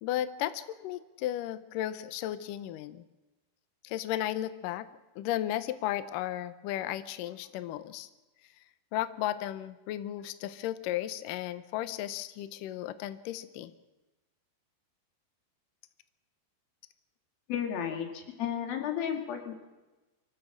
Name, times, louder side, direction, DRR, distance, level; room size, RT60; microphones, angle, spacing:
voice 1, 0.0-3.0 3.8-4.9 5.2-8.1 8.9-13.7, left 13 dB, 90° left, 13 dB, 1.9 m, -34 dB
voice 2, 17.5-19.5, left 9 dB, 60° left, 4 dB, 3.8 m, -33 dB
24.0 x 15.5 x 7.3 m, 1.1 s
omnidirectional pair, 5.0 m